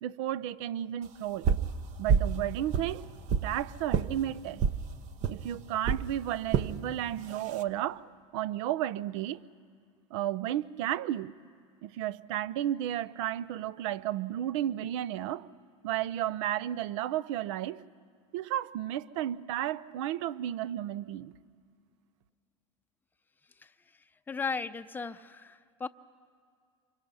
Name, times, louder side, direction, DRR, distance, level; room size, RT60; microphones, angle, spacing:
voice 1, 0.0-1.5 2.0-3.1 3.4-4.6 5.3-9.4 10.1-11.3 11.8-15.5 15.8-17.8 18.3-21.3, right 12 dB, 65° right, 18 dB, 0.6 m, -33 dB
sound 1, 1.4-1.7 2.1-2.4 2.7-3.5 3.9-4.1 4.6-4.8 5.2-5.4 5.8-6.0 6.5-6.7 7.3-7.6, right 7 dB, 45° right, 1.0 m, -26 dB
voice 2, 24.3-25.9, left 5 dB, 10° left, 9 dB, 0.7 m, -36 dB
27.5 x 24.5 x 5.6 m, 2.2 s
hypercardioid pair, 100°, 17 cm